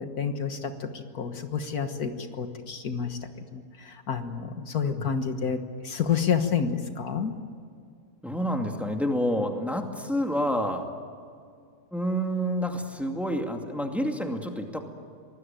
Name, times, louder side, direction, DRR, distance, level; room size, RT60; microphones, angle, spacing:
voice 1, 0.0-7.3, left 6 dB, 70° left, 7 dB, 1.9 m, -29 dB
voice 2, 8.2-10.9 11.9-14.8, equal, ahead, 3 dB, 2.3 m, -28 dB
25.5 x 19.5 x 9.1 m, 2.3 s
omnidirectional pair, 1.7 m